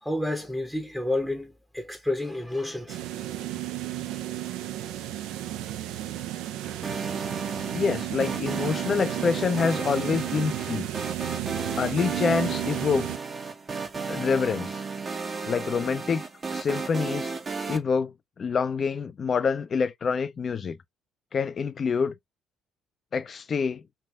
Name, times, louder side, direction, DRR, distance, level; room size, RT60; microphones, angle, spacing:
voice 1, 0.0-3.0, left 1 dB, ahead, 0.7 m, -30 dB
sound 1, 2.9-13.2, right 13 dB, 70° right, 0.3 m, -33 dB
sound 2, 6.8-17.8, right 4 dB, 35° right, 0.7 m, -34 dB
voice 2, 7.7-10.9 11.8-13.1 14.1-14.8 15.4-16.2 16.5-17.3 17.7-20.8 21.3-22.1 23.1-23.8, left 5 dB, 45° left, 0.4 m, -26 dB
3.3 x 2.7 x 2.4 m
hypercardioid pair, 50°, 0 cm